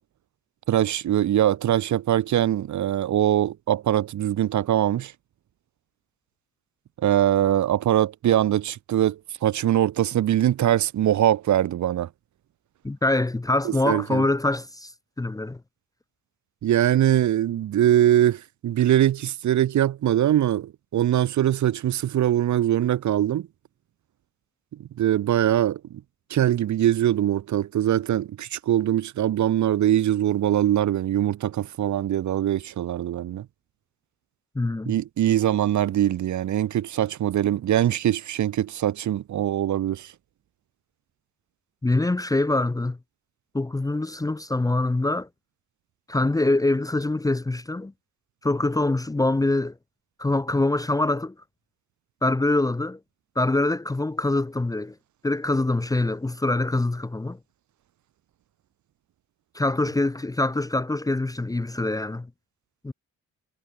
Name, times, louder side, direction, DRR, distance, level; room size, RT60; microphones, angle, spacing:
voice 1, 0.7-5.1 7.0-12.1 13.6-14.2 16.6-23.5 24.8-26.0 26.3-33.5 34.9-40.1, right 12 dB, 70° right, 2.6 m, -22 dB
voice 2, 12.8-14.9 15.2-15.6 34.5-35.0 41.8-43.0 43.5-45.3 46.1-47.9 48.4-49.8 50.2-51.3 52.2-53.0 53.4-55.0 55.2-57.4 59.5-62.3 62.8-62.9, left 2 dB, 10° left, 0.8 m, -24 dB
cardioid pair, 90°, 30 cm